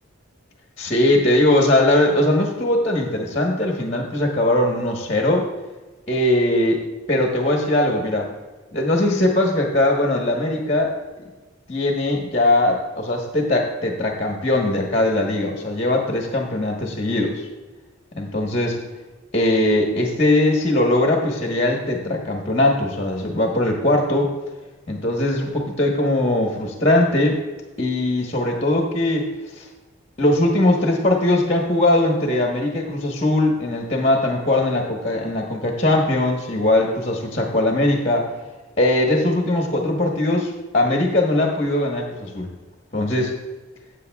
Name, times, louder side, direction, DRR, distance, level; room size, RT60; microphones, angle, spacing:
voice 1, 0.8-5.5 6.1-6.8 7.1-8.3 8.7-11.0 11.7-17.4 18.1-18.8 19.3-24.3 24.9-27.4 27.8-29.3 29.6-29.7 30.2-38.3 38.8-42.5 42.9-43.4, left 1 dB, 30° left, 0 dB, 1.2 m, -20 dB
15.0 x 8.0 x 2.3 m, 1.2 s
head